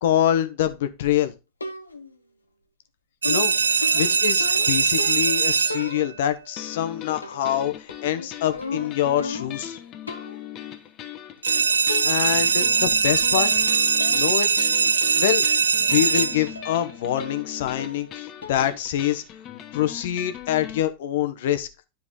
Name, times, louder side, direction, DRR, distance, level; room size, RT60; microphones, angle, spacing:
voice 1, 0.0-1.3 3.3-3.5 3.9-9.8 12.0-13.5 14.1-14.7 15.2-15.4 15.9-19.2 19.7-21.7, left 11 dB, 65° left, 10 dB, 1.0 m, -25 dB
sound 1, 1.6-2.2 3.2-5.4 5.7-6.4 7.2-7.6 7.9-9.7 10.1-10.4 11.4-11.5 11.9-12.4 12.6-13.0 13.3-13.7 14.0-14.2 14.6-14.7 15.9-16.1 16.5-16.9 17.2-17.5 17.8-18.1 18.4-18.8, left 3 dB, 90° left, 1.0 m, -35 dB
sound 2, 3.2-6.1 11.4-16.6, right 5 dB, 85° right, 0.3 m, -21 dB
sound 3, 6.6-20.8, left 11 dB, 40° left, 1.1 m, -40 dB
10.0 x 4.6 x 3.7 m, 0.26 s
hypercardioid pair, 90°, 0 cm